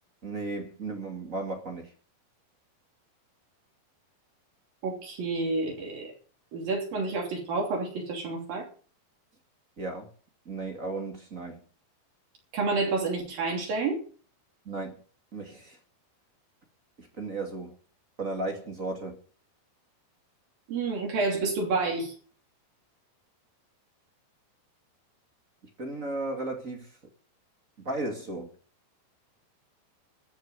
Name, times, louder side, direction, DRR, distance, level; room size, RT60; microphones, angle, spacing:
voice 1, 0.2-1.9 9.8-10.1 10.5-11.6 14.7-15.0 15.3-15.8 17.0-17.8 18.2-19.2 25.8-26.9 27.8-28.5, right 2 dB, 30° right, 1.8 m, -35 dB
voice 2, 4.8-6.1 6.5-8.7 12.5-14.0 20.7-22.1, right 3 dB, 65° right, 4.7 m, -29 dB
14.0 x 6.8 x 9.5 m
omnidirectional pair, 4.4 m